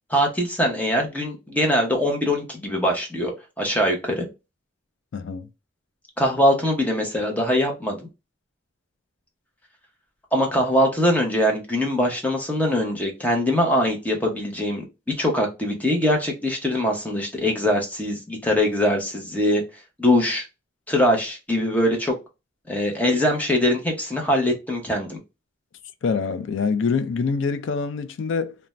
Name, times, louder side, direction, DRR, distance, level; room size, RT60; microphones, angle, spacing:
voice 1, 0.1-3.3 3.6-4.3 6.2-8.1 10.3-19.6 20.0-20.4 20.9-22.1 22.7-25.2, left 1 dB, 10° left, 0.7 m, -22 dB
voice 2, 5.1-5.5 26.0-28.6, left 5 dB, 65° left, 0.4 m, -25 dB
2.5 x 2.1 x 3.0 m
head